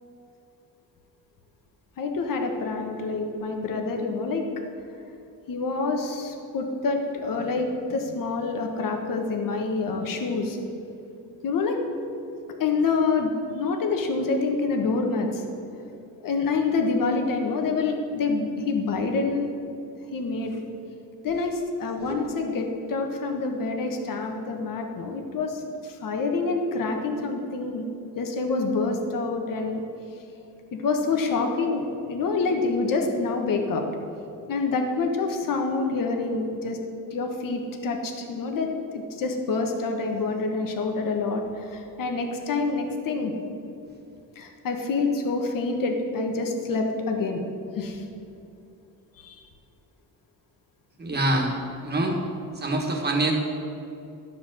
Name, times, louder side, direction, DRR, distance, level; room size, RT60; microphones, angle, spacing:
voice 1, 2.0-4.4 5.5-10.6 11.4-11.8 12.6-15.4 16.2-19.5 20.1-20.6 21.2-27.8 28.2-29.8 30.7-33.8 34.5-36.8 37.1-43.3 44.3-47.4 47.8-48.0 49.2-49.4, left 3 dB, 65° left, 3 dB, 1.2 m, -27 dB
voice 2, 51.0-51.5 51.8-52.2 52.5-53.3, right 2 dB, 25° right, 0 dB, 1.6 m, -24 dB
12.5 x 4.7 x 7.6 m, 2.7 s
cardioid pair, 150°, 36 cm